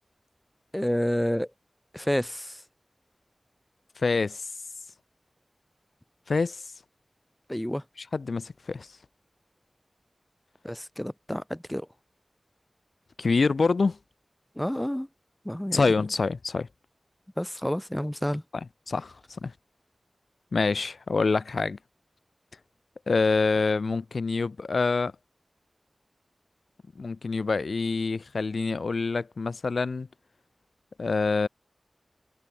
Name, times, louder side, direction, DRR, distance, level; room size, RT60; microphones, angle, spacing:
voice 1, 0.7-1.5 1.9-2.6 7.5-7.8 10.6-11.9 14.6-15.1 15.4-15.9 17.4-18.4, equal, 10° left, 2.6 m, -29 dB
voice 2, 4.0-4.5 6.3-6.6 8.1-8.9 13.2-14.0 15.7-16.7 18.9-19.5 20.5-21.8 23.1-25.1 27.0-30.1 31.0-31.5, left 4 dB, 85° left, 3.4 m, -26 dB
wide cardioid pair, 50°, 0 cm